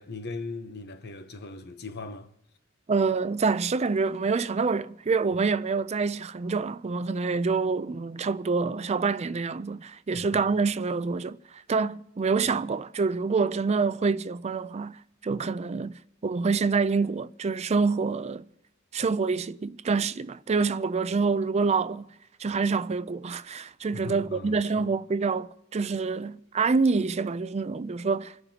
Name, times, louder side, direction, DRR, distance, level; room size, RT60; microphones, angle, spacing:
voice 1, 0.0-2.3 10.1-10.4 23.9-24.9, left 3 dB, 50° left, 0.9 m, -39 dB
voice 2, 2.9-11.4 11.7-18.4 18.9-22.0 22.4-28.3, right 4 dB, 30° right, 0.4 m, -26 dB
29.5 x 11.0 x 2.9 m
head